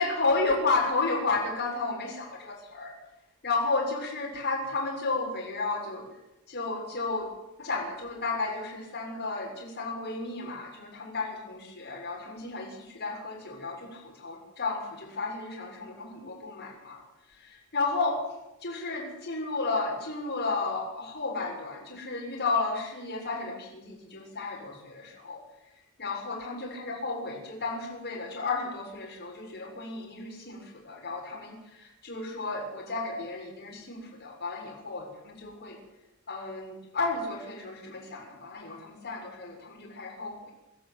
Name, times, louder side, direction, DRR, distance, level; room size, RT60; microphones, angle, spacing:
voice 1, 0.0-2.9 3.4-6.1 6.5-7.3 7.6-17.0 17.3-18.2 18.6-25.4 26.0-35.8 36.3-40.5, left 3 dB, 50° left, -1 dB, 7.0 m, -32 dB
27.5 x 14.0 x 9.5 m, 0.95 s
head